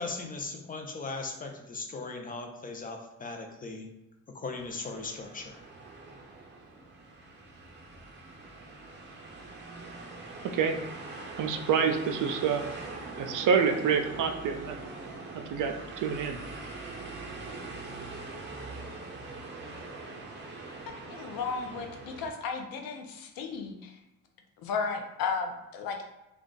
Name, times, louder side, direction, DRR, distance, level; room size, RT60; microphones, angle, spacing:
voice 1, 0.0-4.0 4.3-5.6, left 3 dB, 25° left, 3 dB, 0.6 m, -38 dB
sound 1, 4.5-22.3, right 3 dB, 30° right, 0.7 m, -43 dB
voice 2, 11.4-12.6 13.2-14.8 15.3-16.4, right 6 dB, 60° right, 6 dB, 0.5 m, -27 dB
voice 3, 21.1-23.9 24.6-26.1, left 5 dB, 70° left, 4 dB, 0.7 m, -34 dB
2.4 x 2.3 x 3.8 m, 0.93 s
supercardioid pair, 75°, 36 cm